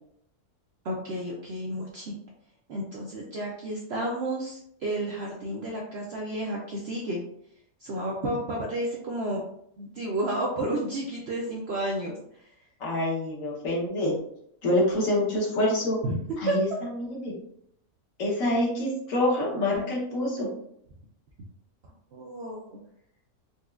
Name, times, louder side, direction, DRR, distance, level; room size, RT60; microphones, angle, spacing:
voice 1, 0.8-2.2 2.7-7.2 7.8-9.4 9.8-12.2 16.0-16.2 16.5-16.6 22.1-22.8, right 1 dB, 70° right, -2 dB, 0.6 m, -31 dB
voice 2, 12.8-14.2 14.6-16.0 16.4-17.3 18.2-20.5, left 1 dB, 60° left, -3 dB, 1.3 m, -26 dB
4.1 x 2.3 x 2.3 m, 0.71 s
omnidirectional pair, 1.6 m